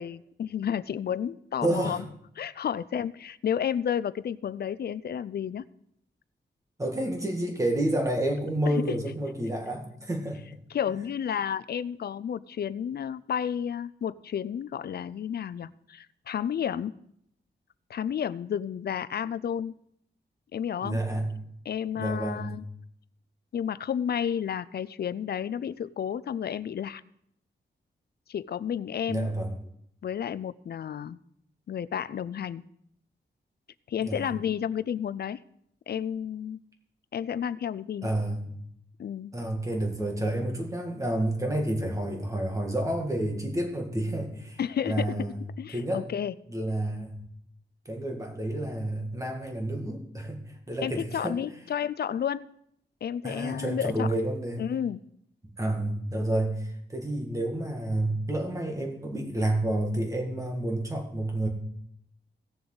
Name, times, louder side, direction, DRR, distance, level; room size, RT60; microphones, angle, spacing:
voice 1, 0.0-2.0 2.4-5.6 8.7-9.0 10.7-16.9 17.9-19.7 20.5-21.0 21.7-22.6 23.5-27.0 28.3-29.3 30.0-31.2 31.7-32.6 33.9-35.4 35.9-36.6 37.1-38.1 39.0-39.3 44.6-45.3 45.6-46.3 50.8-52.5 53.0-54.1 54.6-55.0, left 8 dB, 60° left, 17 dB, 0.4 m, -31 dB
voice 2, 1.6-2.0 6.8-10.4 11.0-11.1 20.8-21.3 22.0-22.5 29.1-29.5 34.0-34.2 38.0-38.5 39.3-44.6 44.9-45.4 45.7-46.0 46.5-47.2 47.9-50.4 50.7-51.4 53.2-54.6 55.4-61.5, right 1 dB, 15° right, 2 dB, 1.9 m, -29 dB
17.5 x 6.9 x 3.9 m, 0.70 s
wide cardioid pair, 140°, 19 cm